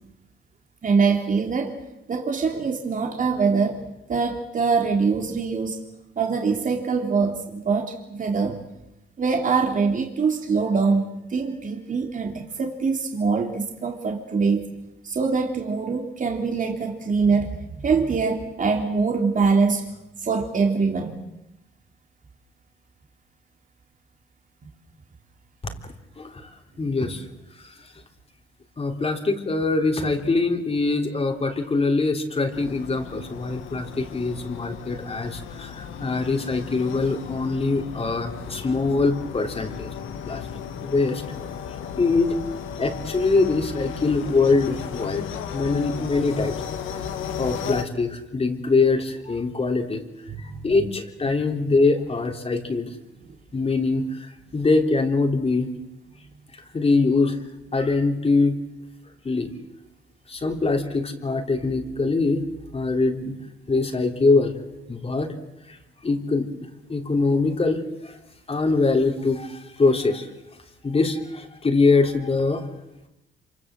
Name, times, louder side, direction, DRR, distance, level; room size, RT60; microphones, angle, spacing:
voice 1, 0.8-1.8 2.1-3.8 4.1-5.8 6.2-8.6 9.2-14.6 15.0-19.9 20.2-21.1 50.3-50.6, right 4 dB, 40° right, 2 dB, 3.2 m, -23 dB
voice 2, 26.2-26.5 26.8-27.3 27.6-27.8 28.8-39.9 40.3-40.5 40.8-41.2 42.0-42.3 42.8-46.6 47.4-50.0 50.4-52.9 53.5-55.7 56.7-57.4 57.7-58.6 59.2-59.5 60.3-62.4 62.7-63.3 63.7-64.5 64.9-65.3 65.7-65.8 66.0-66.5 66.9-68.2 68.5-70.3 70.8-72.7, left 3 dB, 30° left, 3 dB, 3.6 m, -23 dB
sound 1, 32.5-47.8, left 8 dB, 85° left, 2.4 m, -35 dB
27.0 x 26.0 x 7.8 m, 0.90 s
cardioid pair, 90°, 20 cm